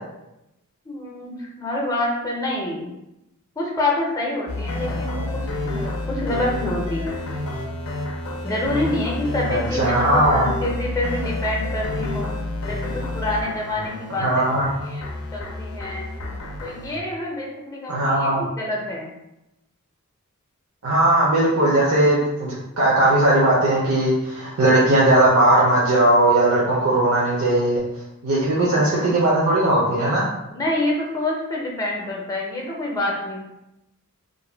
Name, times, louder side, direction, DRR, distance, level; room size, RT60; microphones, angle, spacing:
voice 1, 0.9-2.9 3.6-7.1 8.4-12.3 12.7-14.5 14.8-15.1 15.3-16.0 16.6-19.1 30.5-33.4, left 1 dB, 15° left, -2 dB, 0.5 m, -27 dB
sound 1, 4.5-17.0, left 2 dB, 70° left, 0.4 m, -29 dB
voice 2, 9.5-10.5 14.2-14.7 17.9-18.4 20.8-27.8 28.2-30.2, right 1 dB, 70° right, -6 dB, 0.6 m, -18 dB
2.5 x 2.2 x 3.3 m, 0.90 s
head